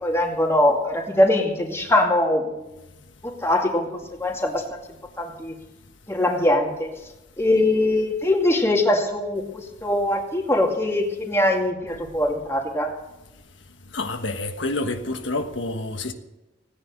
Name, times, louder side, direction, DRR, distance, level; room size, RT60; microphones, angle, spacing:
voice 1, 0.0-2.7 3.2-4.6 5.2-5.5 6.1-6.9 7.4-12.9, left 1 dB, 15° left, 2.3 m, -22 dB
voice 2, 13.9-16.1, left 2 dB, 85° left, 1.3 m, -28 dB
17.0 x 10.0 x 6.6 m
head